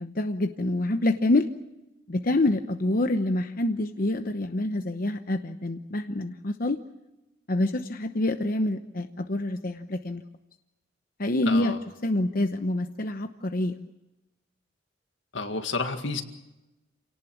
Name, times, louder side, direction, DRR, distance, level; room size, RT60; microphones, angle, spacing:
voice 1, 0.0-1.5 2.1-6.8 7.5-10.2 11.2-11.7 12.0-13.7, left 1 dB, 50° left, 7 dB, 0.9 m, -26 dB
voice 2, 11.5-11.8 15.3-16.2, left 3 dB, 80° left, 6 dB, 2.1 m, -30 dB
28.0 x 18.5 x 7.3 m, 1.0 s
head